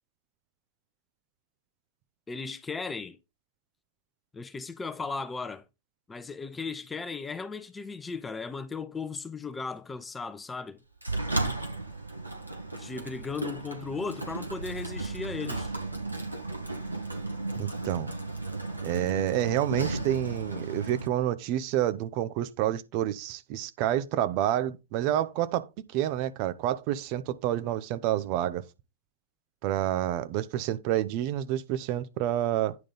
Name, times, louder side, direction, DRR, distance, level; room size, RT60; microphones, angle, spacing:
voice 1, 2.3-3.2 4.3-5.6 6.1-10.8 12.7-15.7, left 4 dB, 15° left, 0.8 m, -36 dB
Sliding door, 11.0-21.1, right 2 dB, 85° right, 2.1 m, -34 dB
voice 2, 17.6-18.1 18.8-25.7 25.9-28.6 29.6-32.8, right 12 dB, 45° right, 0.6 m, -28 dB
9.7 x 3.7 x 5.4 m
figure-of-eight pair, 90°, 0 cm